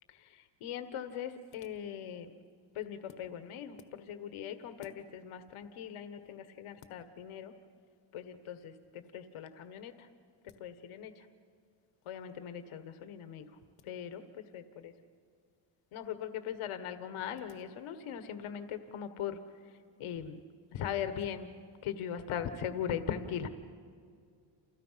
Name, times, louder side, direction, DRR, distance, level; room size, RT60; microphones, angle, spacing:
voice 1, 0.2-2.3 2.7-7.5 8.1-10.1 10.6-11.2 12.0-13.5 13.8-14.9 15.9-19.4 20.0-20.4 20.7-21.5 21.8-23.5, left 9 dB, 75° left, 9 dB, 1.7 m, -40 dB
29.5 x 28.5 x 5.9 m, 2.2 s
cardioid pair, 90°, 50 cm